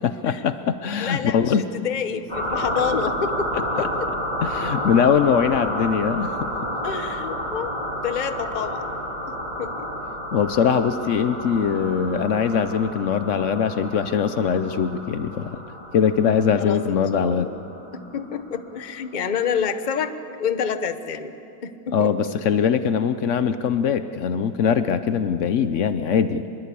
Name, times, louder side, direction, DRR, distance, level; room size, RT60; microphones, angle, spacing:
voice 1, 0.0-1.6 3.8-3.9 4.4-6.5 10.3-15.6 15.9-17.5 21.9-26.5, left 7 dB, 90° left, 11 dB, 0.6 m, -22 dB
voice 2, 1.0-3.9 6.8-8.9 9.3-9.7 16.5-17.5 17.9-20.1 20.4-21.3 21.6-22.1, left 7 dB, 35° left, 10 dB, 0.7 m, -28 dB
sound 1, 2.3-18.6, equal, 20° left, 3.8 m, -30 dB
24.5 x 22.5 x 8.5 m, 2.8 s
omnidirectional pair, 2.2 m